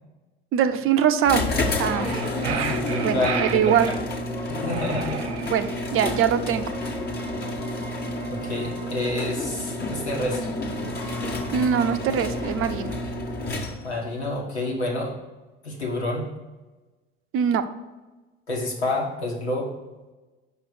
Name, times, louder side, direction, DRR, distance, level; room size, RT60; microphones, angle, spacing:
voice 1, 0.5-1.5 1.8-2.1 3.0-3.9 5.4-6.8 11.5-12.9 17.3-17.6, right 8 dB, 40° right, 9 dB, 0.7 m, -22 dB
sound 1, 1.2-14.0, left 1 dB, 30° left, 1.4 m, -30 dB
sound 2, 1.3-5.5 6.2-9.7 10.5-14.9, left 1 dB, 5° left, 1.3 m, -44 dB
sound 3, 1.8-4.0 4.6-5.9, right 7 dB, 80° right, 0.6 m, -32 dB
voice 2, 2.5-3.9 4.5-5.2 8.3-10.5 13.8-15.1 15.6-16.3 18.5-19.7, left 2 dB, 85° left, -2 dB, 1.7 m, -28 dB
5.8 x 5.2 x 6.5 m, 1.2 s
figure-of-eight pair, 65°, 32 cm